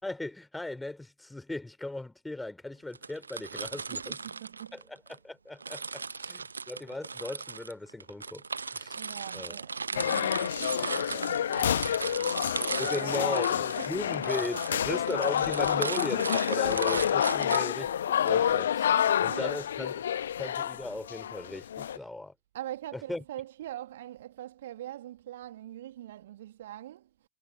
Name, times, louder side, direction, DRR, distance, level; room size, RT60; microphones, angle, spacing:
voice 1, 0.0-4.2 4.7-8.4 8.7-9.0 9.3-9.6 12.8-20.0 20.4-22.3 22.9-23.2, left 2 dB, 5° left, 2.9 m, -37 dB
sound 1, 2.9-5.2 5.6-18.3, right 4 dB, 75° right, 0.5 m, -37 dB
voice 2, 3.7-4.8 8.9-14.0 14.5-14.8 15.6-15.9 17.3-17.5 17.8-18.0 18.9-19.6 21.9-22.0 22.5-27.1, right 13 dB, 60° right, 1.6 m, -43 dB
sound 2, 9.9-22.0, left 9 dB, 65° left, 0.9 m, -28 dB
figure-of-eight pair, 90°, 0 cm